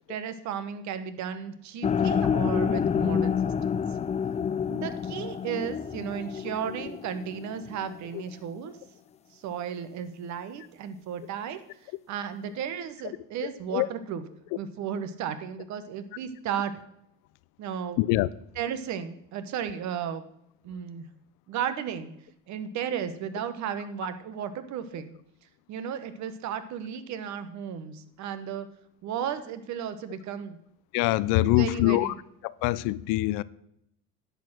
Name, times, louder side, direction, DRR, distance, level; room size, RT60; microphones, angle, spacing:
voice 1, 0.1-3.8 4.7-8.8 9.3-14.3 14.6-16.7 17.6-18.0 18.5-20.2 20.6-21.1 21.5-22.1 22.5-25.1 25.7-28.7 29.0-30.6 31.3-32.1, right 8 dB, 65° right, 1.2 m, -34 dB
sound 1, 1.8-8.0, left 7 dB, 20° left, 0.4 m, -28 dB
voice 2, 18.0-18.3 30.9-32.1 32.6-33.4, left 18 dB, 80° left, 0.5 m, -23 dB
10.5 x 6.7 x 6.1 m
supercardioid pair, 100°, 31 cm